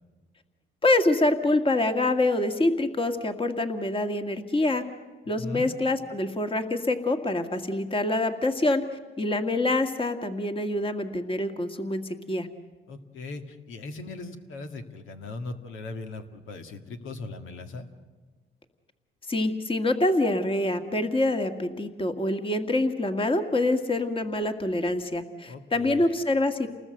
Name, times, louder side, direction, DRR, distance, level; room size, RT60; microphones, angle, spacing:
voice 1, 0.8-4.8 5.3-8.8 9.2-12.5 19.3-26.7, left 2 dB, 25° left, 7 dB, 1.8 m, -26 dB
voice 2, 5.4-5.7 12.9-17.9 25.5-26.1, left 3 dB, 85° left, 6 dB, 2.0 m, -39 dB
28.5 x 19.5 x 7.9 m, 1.4 s
cardioid pair, 90°, 20 cm